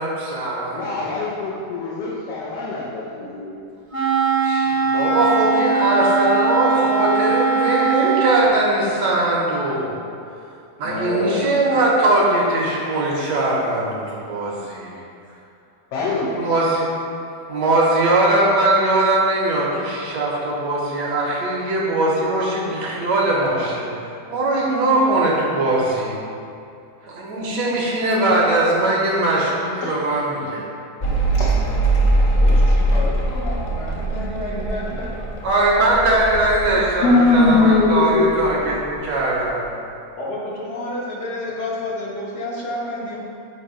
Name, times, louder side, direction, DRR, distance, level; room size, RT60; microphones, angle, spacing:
voice 1, 0.0-1.1 4.4-9.9 10.8-14.9 16.3-16.9 17.5-23.9 24.3-26.2 27.0-30.7 35.4-39.7, right 2 dB, 80° right, -5 dB, 1.4 m, -20 dB
voice 2, 0.7-3.6 10.8-11.5 15.9-16.3 29.8-30.0 31.4-31.5 37.0-38.8, left 3 dB, 85° left, -6 dB, 1.4 m, -21 dB
Wind instrument woodwind instrument, 3.9-8.5, right 4 dB, 40° right, 0.4 m, -20 dB
voice 3, 7.7-8.3 16.3-16.5 32.4-35.3 40.2-43.2, left 1 dB, 65° left, -6 dB, 1.7 m, -30 dB
Mechanical fan, 31.0-37.9 38.1-38.9, right 1 dB, 50° left, 0.5 m, -21 dB
7.6 x 2.9 x 4.8 m, 2.5 s
omnidirectional pair, 1.8 m